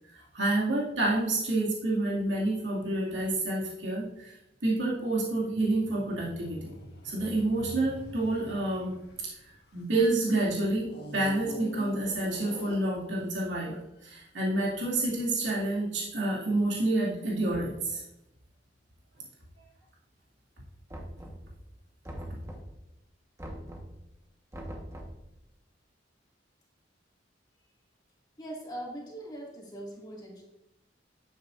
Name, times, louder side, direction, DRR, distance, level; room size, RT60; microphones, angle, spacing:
voice 1, 0.0-6.7 7.0-18.0, right 2 dB, 85° right, -4 dB, 2.4 m, -29 dB
sound 1, 5.4-10.1 10.8-13.4 14.1-14.2, equal, 60° left, 1.5 m, -45 dB
Knock, 20.9-21.6 22.0-22.8 23.4-24.0 24.5-25.2, equal, 15° right, 1.4 m, -42 dB
voice 2, 28.4-30.4, right 1 dB, 25° left, -3 dB, 2.3 m, -41 dB
10.5 x 9.1 x 2.6 m, 0.87 s
head